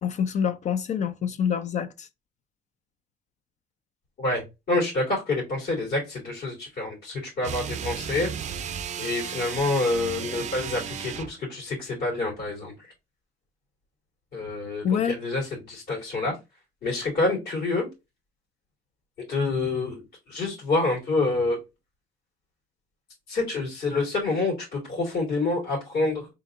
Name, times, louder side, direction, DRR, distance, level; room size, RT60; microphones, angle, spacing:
voice 1, 0.0-2.1 14.8-15.1, left 7 dB, 45° left, 0.4 m, -26 dB
voice 2, 4.2-8.3 9.0-12.9 14.3-16.4 16.8-17.9 19.3-20.0 20.3-21.6 23.3-26.3, left 2 dB, 70° left, 2.7 m, -27 dB
sound 1, 7.4-11.4, right 8 dB, 45° right, 0.5 m, -34 dB
3.8 x 2.6 x 3.5 m
cardioid pair, 110°, 17 cm